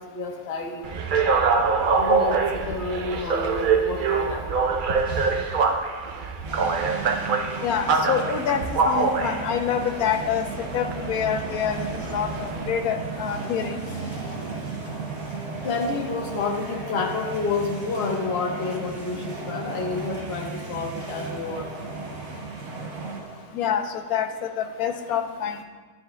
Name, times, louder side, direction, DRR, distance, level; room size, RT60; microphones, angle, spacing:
voice 1, 0.1-0.9 2.0-4.5 15.6-21.7, left 4 dB, 50° left, 1 dB, 1.2 m, -29 dB
sound 1, 0.8-12.7, right 4 dB, 85° right, 0.4 m, -25 dB
sound 2, 5.1-5.7 6.5-23.8, right 1 dB, 20° right, 1.0 m, -40 dB
sound 3, 6.4-23.2, right 5 dB, 65° right, 0.9 m, -36 dB
voice 2, 7.6-10.4 10.7-13.7 23.5-25.6, left 8 dB, 75° left, 6 dB, 1.2 m, -26 dB
12.0 x 9.6 x 2.2 m, 1.4 s
omnidirectional pair, 1.6 m